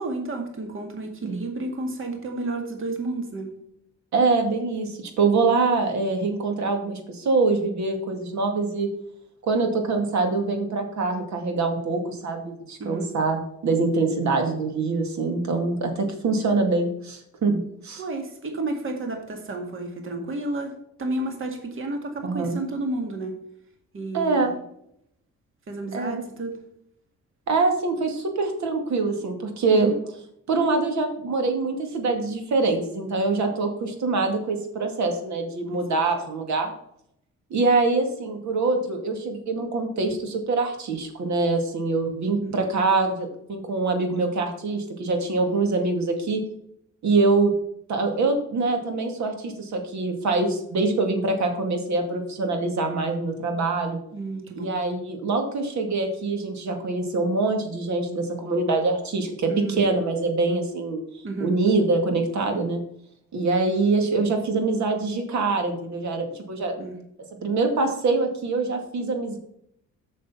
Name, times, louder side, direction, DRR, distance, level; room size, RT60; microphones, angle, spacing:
voice 1, 0.0-3.5 12.8-13.1 18.0-20.7 21.0-23.4 23.9-24.6 25.7-26.6 29.7-30.0 42.4-42.7 54.1-54.7 59.5-60.0 61.2-61.6 66.8-67.0, right 2 dB, 45° right, 3 dB, 2.0 m, -31 dB
voice 2, 4.1-8.9 9.4-18.0 22.2-22.6 24.1-24.5 25.9-26.2 27.5-29.9 30.5-36.7 37.5-46.4 47.0-47.5 47.9-54.0 54.6-59.5 59.8-61.0 61.4-62.8 63.3-66.7 67.4-69.4, right 3 dB, 65° right, 4 dB, 2.2 m, -24 dB
6.9 x 6.4 x 5.6 m, 0.72 s
cardioid pair, 90°, 30 cm